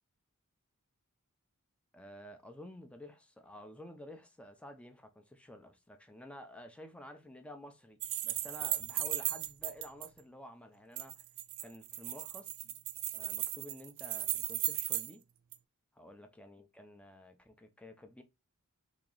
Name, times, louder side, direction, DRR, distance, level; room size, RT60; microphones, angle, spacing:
voice 1, 1.9-11.2 11.6-12.5 13.1-15.2 15.9-18.2, left 1 dB, 5° left, 0.5 m, -51 dB
sound 1, 8.0-10.1 11.0-15.1 15.5-15.6, right 14 dB, 60° right, 0.4 m, -36 dB
3.0 x 2.9 x 3.8 m
head